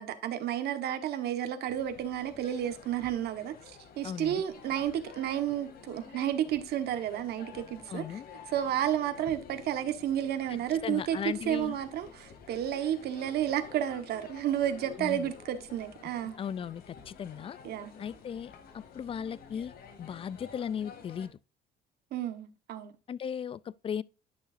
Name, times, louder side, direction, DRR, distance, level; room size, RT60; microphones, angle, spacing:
voice 1, 0.0-8.2 8.5-16.4 17.6-17.9 22.1-22.9, right 10 dB, 70° right, 1.4 m, -32 dB
sound 1, 1.7-21.3, left 6 dB, 65° left, 2.4 m, -51 dB
voice 2, 4.0-4.4 7.9-8.3 10.8-11.8 15.0-15.3 16.4-17.6 18.0-19.7 20.0-21.3 23.1-24.0, left 8 dB, 35° left, 0.4 m, -37 dB
11.0 x 6.4 x 2.6 m
cardioid pair, 110°, 17 cm